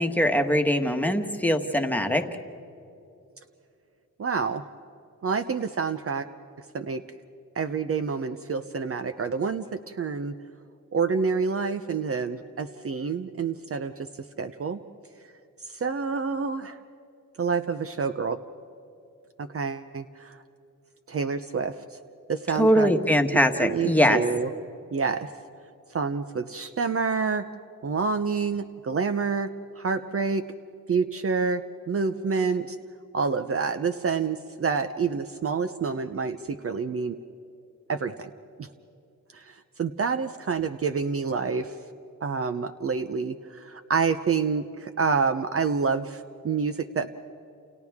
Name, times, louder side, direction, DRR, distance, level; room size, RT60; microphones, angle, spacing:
voice 1, 0.0-2.2 22.6-24.2, equal, 5° left, 5 dB, 1.5 m, -22 dB
voice 2, 4.2-4.6 5.2-6.3 6.7-7.0 7.6-10.3 10.9-13.9 14.4-14.8 15.7-16.8 17.4-18.4 19.4-20.4 21.1-21.8 22.3-22.9 23.6-24.5 24.9-25.3 25.9-27.4 27.8-29.5 29.8-30.4 30.9-32.8 33.1-37.2 37.9-38.3 39.3-41.7 42.2-47.1, right 5 dB, 45° right, 9 dB, 0.7 m, -28 dB
30.0 x 29.0 x 3.6 m, 2.6 s
cardioid pair, 100°, 33 cm